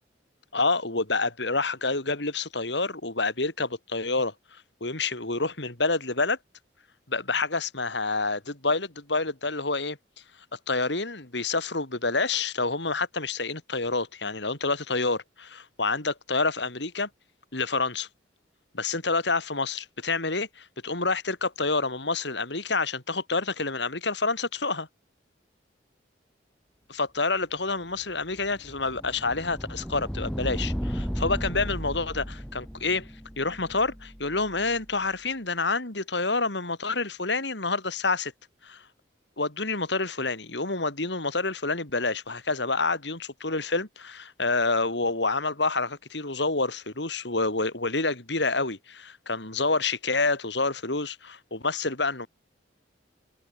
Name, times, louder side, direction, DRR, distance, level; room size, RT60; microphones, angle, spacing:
voice 1, 0.5-4.3 4.8-6.4 7.1-10.0 10.7-17.1 17.5-18.1 18.7-24.9 26.9-33.1 33.4-38.3 38.6-38.8 39.4-52.3, left 3 dB, 70° left, 3.6 m, -28 dB
sound 1, 28.0-34.8, equal, 5° left, 5.9 m, -35 dB
head